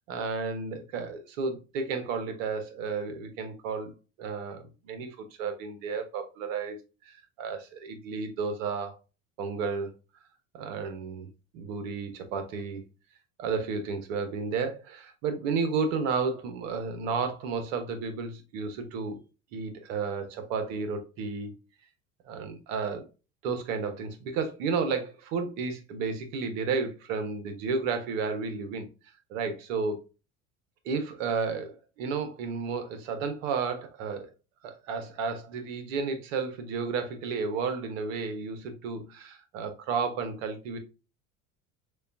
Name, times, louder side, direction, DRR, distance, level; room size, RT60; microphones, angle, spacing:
voice 1, 0.1-3.9 4.2-6.8 7.1-8.9 9.4-9.9 10.5-12.8 13.4-19.2 19.5-21.5 22.2-23.1 23.4-28.9 29.3-30.0 30.8-34.3 34.6-40.8, right 5 dB, 70° right, 7 dB, 1.0 m, -32 dB
6.5 x 2.4 x 2.5 m, 0.32 s
hypercardioid pair, 75°, 40 cm